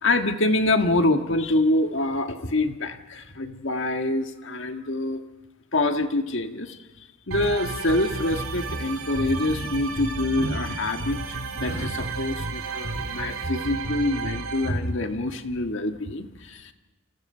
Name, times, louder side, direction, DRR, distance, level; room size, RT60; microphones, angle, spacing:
voice 1, 0.0-5.2 5.7-6.8 7.3-16.7, left 2 dB, 55° left, 6 dB, 1.6 m, -25 dB
sound 1, 7.3-14.7, right 3 dB, 70° right, 2.9 m, -32 dB
30.0 x 27.0 x 5.7 m, 1.2 s
head